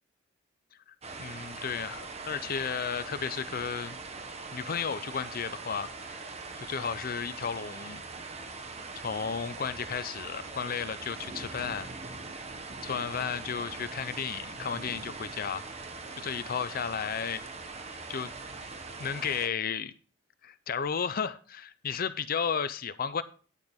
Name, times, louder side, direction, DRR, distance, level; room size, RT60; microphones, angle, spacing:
sound 1, 1.0-19.5, right 3 dB, 35° right, 1.1 m, -42 dB
voice 1, 1.2-4.0 4.5-5.9 6.3-6.4 6.7-8.0 9.0-11.9 12.8-15.6 16.2-17.4 18.1-18.3 19.0-19.9 20.4-23.2, left 6 dB, 50° left, 14 dB, 0.6 m, -33 dB
9.9 x 9.0 x 3.6 m, 0.39 s
head